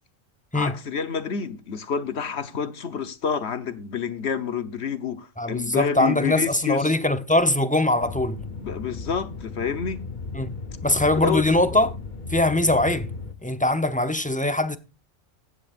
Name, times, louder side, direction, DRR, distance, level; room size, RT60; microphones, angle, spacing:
voice 1, 0.5-6.9 8.6-10.0 11.1-11.4, left 6 dB, 55° left, 1.3 m, -28 dB
voice 2, 5.4-8.4 10.3-10.5 10.8-11.9 12.3-13.1 13.4-14.8, left 1 dB, 5° left, 0.8 m, -22 dB
sound 1, 8.0-13.3, left 4 dB, 40° left, 1.2 m, -35 dB
15.5 x 10.0 x 2.5 m
omnidirectional pair, 1.3 m